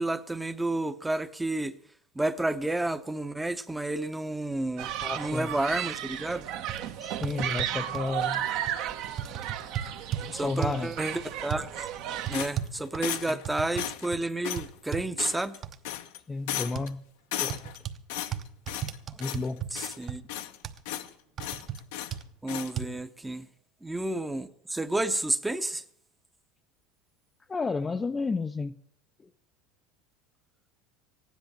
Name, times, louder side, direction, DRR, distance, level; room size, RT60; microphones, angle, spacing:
voice 1, 0.0-1.8 2.1-6.5 10.3-11.9 12.3-15.6 19.7-20.2 22.4-23.5 23.8-25.8, right 2 dB, 10° right, 0.8 m, -31 dB
Human group actions, 4.8-12.5, right 11 dB, 65° right, 1.3 m, -34 dB
voice 2, 5.0-5.5 7.0-8.4 10.3-10.9 13.3-13.4 16.3-17.0 17.4-17.6 19.1-19.6 27.5-28.7, left 3 dB, 20° left, 0.5 m, -32 dB
sound 1, 6.3-6.4 6.7-6.8 7.2-8.1 8.7-8.8 9.2-10.3 10.6-10.9 11.5-11.6 12.3-13.9 14.1-14.2 14.6-15.1 15.6-15.8 16.8-16.9 17.5-18.0 18.3-19.7 20.1-20.2 20.6-20.8 21.4-21.8 22.1-22.2 22.8-22.9, right 10 dB, 40° right, 1.0 m, -34 dB
sound 2, 12.3-13.4 13.8-14.1 14.4-14.7 15.2-15.6 15.8-16.2 16.5-16.9 17.3-17.8 18.1-19.0 19.2-19.5 19.8-20.6 20.9-21.1 21.4-22.2 22.5-22.7, left 12 dB, 80° left, 1.0 m, -35 dB
15.0 x 10.5 x 7.2 m
supercardioid pair, 115°, 0 cm